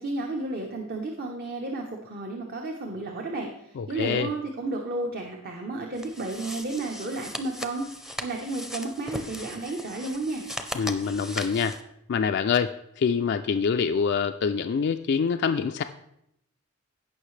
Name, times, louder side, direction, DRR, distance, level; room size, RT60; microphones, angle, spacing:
voice 1, 0.0-7.9 8.2-10.4, right 2 dB, 45° right, 1 dB, 0.9 m, -32 dB
voice 2, 3.8-4.3 10.7-11.8 12.1-15.8, left 6 dB, 55° left, 7 dB, 0.3 m, -25 dB
sound 1, 5.9-11.8, equal, ahead, 0.6 m, -38 dB
16.5 x 5.6 x 3.2 m, 0.79 s
head